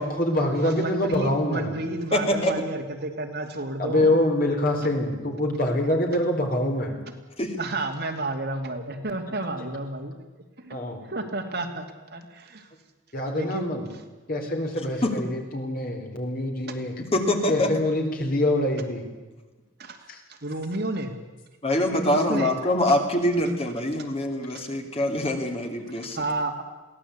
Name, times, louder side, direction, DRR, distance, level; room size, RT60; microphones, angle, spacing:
voice 1, 0.0-1.7 3.8-6.9 10.7-11.0 13.1-13.9 14.3-17.0 17.5-19.1 20.1-20.2 21.9-22.0, left 1 dB, 45° left, 3 dB, 4.1 m, -25 dB
voice 2, 0.6-4.1 7.6-10.2 10.6-10.8 11.0-12.7 13.3-13.8 19.8-20.0 20.3-21.2 22.1-22.5 26.0-26.6, right 2 dB, 55° right, 4 dB, 2.5 m, -31 dB
voice 3, 2.1-2.5 7.4-7.6 15.0-15.1 17.1-17.7 21.6-26.2, left 1 dB, 30° left, 4 dB, 2.7 m, -24 dB
22.5 x 17.0 x 8.6 m, 1.2 s
head